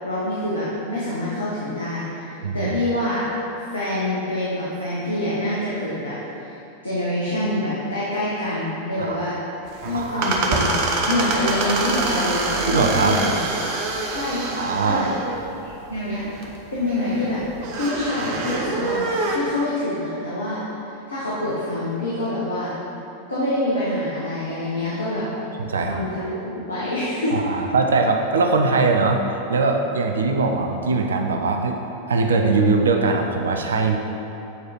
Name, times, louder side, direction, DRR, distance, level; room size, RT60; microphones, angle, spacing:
voice 1, 0.0-3.3 3.6-6.6 6.8-9.3 9.8-10.7 11.1-13.4 14.1-14.4 14.8-15.1 15.6-16.3 16.7-17.4 17.7-20.6 21.1-22.7 23.3-25.3 25.8-27.6, left 1 dB, 75° left, -8 dB, 1.4 m, -26 dB
voice 2, 2.4-2.7 9.0-9.2 9.9-10.3 11.0-11.1 12.7-13.2 14.4-15.0 25.6-26.0 27.3-31.8 32.1-34.0, right 3 dB, 70° right, 4 dB, 0.5 m, -21 dB
sound 1, 9.7-19.4, right 3 dB, 45° right, 0.9 m, -26 dB
8.1 x 4.7 x 4.5 m, 3.0 s
figure-of-eight pair, 90°, 0 cm